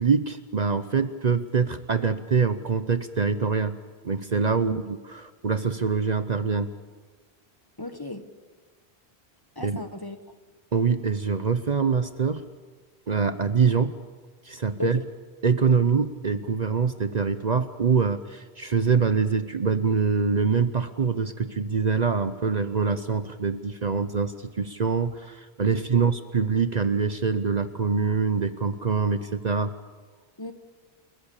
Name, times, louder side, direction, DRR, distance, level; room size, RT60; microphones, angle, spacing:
voice 1, 0.0-3.8 4.0-6.7 9.6-9.8 10.7-12.4 13.1-13.9 14.4-15.0 15.4-29.7, right 5 dB, 45° right, 11 dB, 0.9 m, -24 dB
voice 2, 7.8-8.2 9.6-10.2 14.8-15.0 25.9-26.1 30.4-30.5, left 2 dB, 20° left, 8 dB, 1.2 m, -35 dB
29.0 x 14.5 x 8.4 m, 1.4 s
omnidirectional pair, 1.0 m